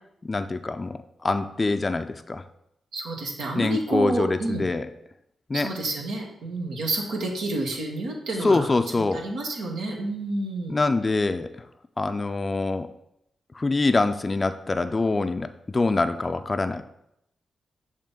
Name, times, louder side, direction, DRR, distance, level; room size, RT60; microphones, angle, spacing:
voice 1, 0.2-2.4 3.6-4.9 5.5-5.7 8.4-9.2 10.7-11.5 12.0-12.9 13.5-16.8, left 3 dB, 35° left, 9 dB, 0.4 m, -25 dB
voice 2, 2.9-4.6 5.5-8.7 9.0-10.7, right 2 dB, 80° right, 0 dB, 1.1 m, -29 dB
6.7 x 2.8 x 5.2 m, 0.80 s
supercardioid pair, 40°, 0 cm